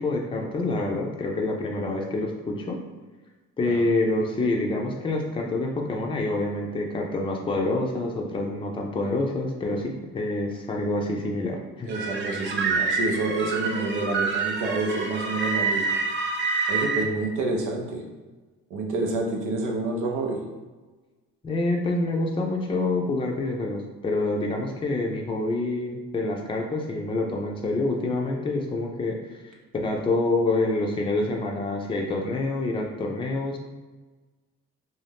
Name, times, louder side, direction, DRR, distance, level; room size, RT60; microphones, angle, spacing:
voice 1, 0.0-2.8 3.6-11.9 21.4-29.2 29.8-33.6, left 2 dB, 15° left, 0 dB, 0.4 m, -27 dB
voice 2, 11.8-16.0 16.7-18.0 18.7-20.4, right 3 dB, 85° right, 1 dB, 0.6 m, -28 dB
sound 1, 11.9-17.0, right 4 dB, 40° right, 0.5 m, -27 dB
2.6 x 2.2 x 3.4 m, 1.3 s
cardioid pair, 90°, 30 cm